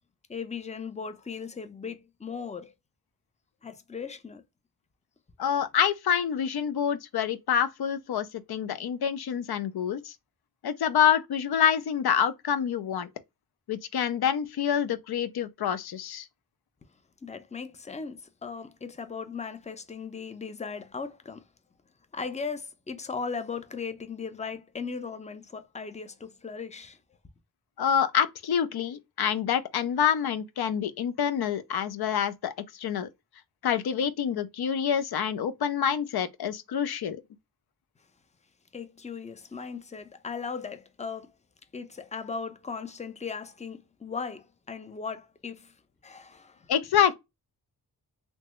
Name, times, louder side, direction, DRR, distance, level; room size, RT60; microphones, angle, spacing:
voice 1, 0.3-2.7 3.6-4.4 17.2-21.4 22.1-27.0 38.7-41.3 41.7-45.7 46.0-46.7, left 5 dB, 20° left, 0.5 m, -37 dB
voice 2, 5.4-10.1 10.6-13.1 13.7-16.3 27.8-33.1 33.6-37.2 46.7-47.1, left 8 dB, 65° left, 0.5 m, -27 dB
3.3 x 2.0 x 2.9 m
cardioid pair, 60°, 40 cm